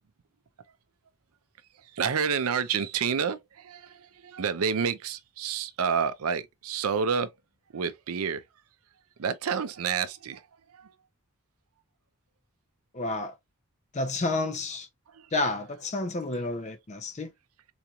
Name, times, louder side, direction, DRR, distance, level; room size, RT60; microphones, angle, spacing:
voice 1, 1.7-7.4 7.7-8.4 9.2-10.9 15.1-15.3, right 6 dB, 80° right, 0.5 m, -29 dB
voice 2, 12.9-13.3 13.9-14.9 15.3-17.3, left 2 dB, 30° left, 0.5 m, -30 dB
3.9 x 2.9 x 2.3 m
head